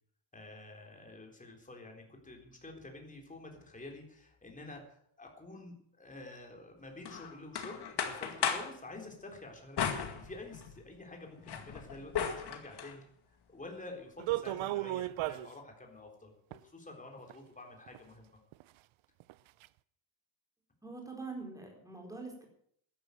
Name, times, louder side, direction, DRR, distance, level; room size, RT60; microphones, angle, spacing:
voice 1, 0.3-13.0 13.5-18.4, left 2 dB, 15° left, 2 dB, 3.9 m, -49 dB
sound 1, 7.0-8.8 9.8-10.8 11.2-12.9, left 7 dB, 55° left, 2.1 m, -36 dB
sound 2, 14.2-15.5 16.5-16.6 17.3-17.4 17.9-18.0 18.5-18.6 19.2-19.3 19.6-19.7, right 16 dB, 85° right, 0.7 m, -34 dB
voice 2, 20.8-22.4, right 3 dB, 5° right, 0 dB, 4.5 m, -44 dB
13.0 x 11.5 x 7.9 m, 0.65 s
cardioid pair, 140°, 46 cm